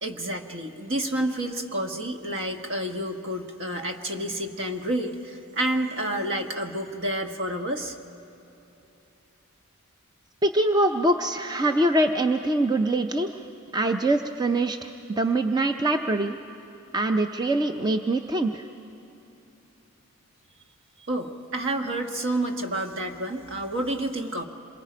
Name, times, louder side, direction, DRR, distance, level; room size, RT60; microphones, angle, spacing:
voice 1, 0.0-8.0 21.1-24.4, right 1 dB, 55° right, 4 dB, 1.4 m, -29 dB
voice 2, 10.4-13.3 13.7-14.9 15.2-16.4 16.9-18.6, right 1 dB, 20° right, 6 dB, 0.5 m, -23 dB
27.0 x 22.5 x 5.1 m, 3.0 s
head